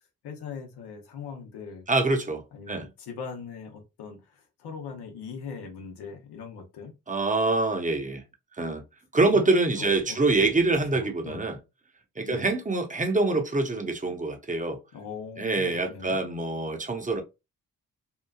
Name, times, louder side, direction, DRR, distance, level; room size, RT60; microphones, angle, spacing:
voice 1, 0.2-1.8 2.5-6.9 9.3-10.2 10.9-11.5 12.2-12.5 14.9-16.2, left 6 dB, 85° left, 0.8 m, -40 dB
voice 2, 1.9-2.8 7.1-8.2 8.6-8.8 9.1-11.6 12.2-14.8 15.4-17.2, right 3 dB, 20° right, 0.8 m, -25 dB
3.0 x 2.2 x 2.3 m
supercardioid pair, 45°, 38 cm